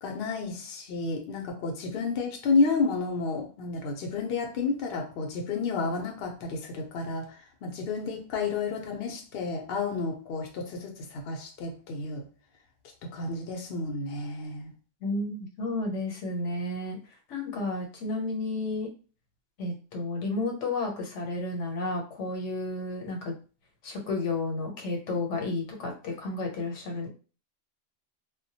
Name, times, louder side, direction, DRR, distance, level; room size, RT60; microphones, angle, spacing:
voice 1, 0.0-12.3 13.0-14.7, left 4 dB, 60° left, 0.7 m, -31 dB
voice 2, 15.0-17.0 17.3-18.9 19.6-23.3 23.8-27.1, left 2 dB, 80° left, 1.0 m, -32 dB
2.2 x 2.1 x 2.7 m
omnidirectional pair, 1.2 m